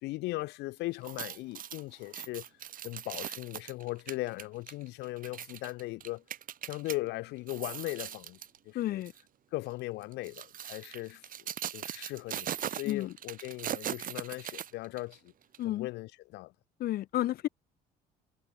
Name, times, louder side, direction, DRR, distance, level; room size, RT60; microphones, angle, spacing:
voice 1, 0.0-2.4 2.8-6.2 6.6-8.4 8.6-9.0 9.5-11.2 11.7-15.3 15.6-16.5, left 20 dB, 90° left, 3.0 m, -38 dB
sound 1, 0.9-7.0 7.4-8.6 9.0-9.2 10.0-15.1 15.5-15.6, right 10 dB, 55° right, 3.6 m, -40 dB
voice 2, 8.7-9.1 12.8-13.1 15.6-15.9 16.8-17.5, left 14 dB, 65° left, 1.0 m, -31 dB
cardioid pair, 110°, 17 cm